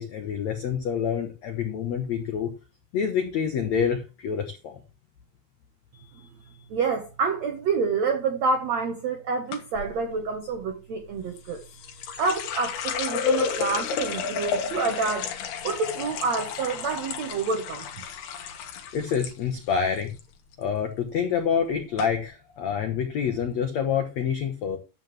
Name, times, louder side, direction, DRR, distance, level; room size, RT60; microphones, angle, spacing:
voice 1, 0.0-2.5 2.9-4.8 18.9-20.1 20.6-24.8, left 7 dB, 90° left, 1.5 m, -27 dB
voice 2, 6.7-11.6 12.2-15.3 15.6-17.8, right 4 dB, 80° right, 1.5 m, -28 dB
sound 1, 9.5-9.9 11.4-19.3 19.6-20.2 20.5-20.9 21.5-21.6 22.0-22.1, left 6 dB, 70° left, 3.2 m, -31 dB
11.5 x 7.8 x 3.2 m
omnidirectional pair, 5.0 m